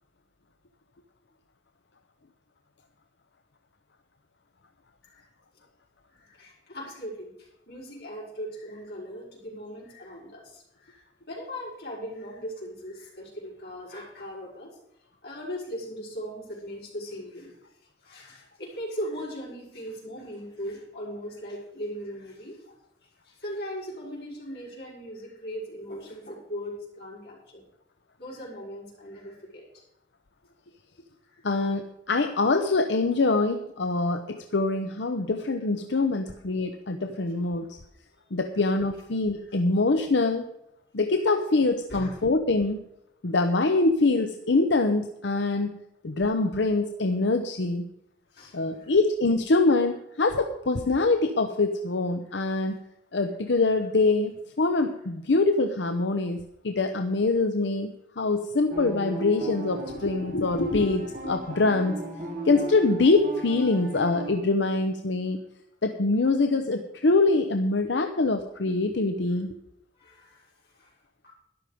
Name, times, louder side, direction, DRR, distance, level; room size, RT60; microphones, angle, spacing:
voice 1, 6.1-14.8 15.2-17.5 18.0-22.7 23.2-27.6 28.2-29.7 31.2-31.3 39.4-39.6 41.9-42.1 48.3-48.9 70.0-70.9 71.2-71.3, equal, 60° left, -4 dB, 5.7 m, -39 dB
voice 2, 31.4-37.8 38.3-40.5 40.9-42.8 43.2-47.8 48.5-52.8 53.1-57.9 58.2-62.0 62.4-65.4 65.8-69.6, left 3 dB, 90° left, 7 dB, 0.8 m, -24 dB
sound 1, 58.7-64.3, right 1 dB, 50° right, 2.3 m, -37 dB
12.5 x 11.0 x 5.1 m, 0.80 s
head